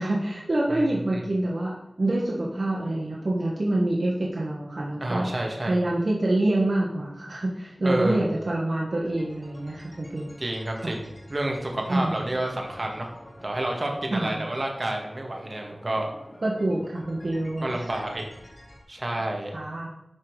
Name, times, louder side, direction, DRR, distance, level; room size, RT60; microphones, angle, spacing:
voice 1, 0.0-5.3 5.6-10.4 10.8-10.9 11.9-12.3 14.1-14.4 16.4-17.7 19.5-19.9, right 1 dB, 65° right, -4 dB, 1.3 m, -26 dB
voice 2, 5.0-5.8 7.8-8.3 10.4-13.1 13.4-16.1 17.6-18.2 18.9-19.5, right 1 dB, 45° right, 1 dB, 1.6 m, -29 dB
sound 1, 9.0-18.8, left 1 dB, 40° left, 2.6 m, -49 dB
11.0 x 3.9 x 4.8 m, 0.86 s
wide cardioid pair, 55°, 0 cm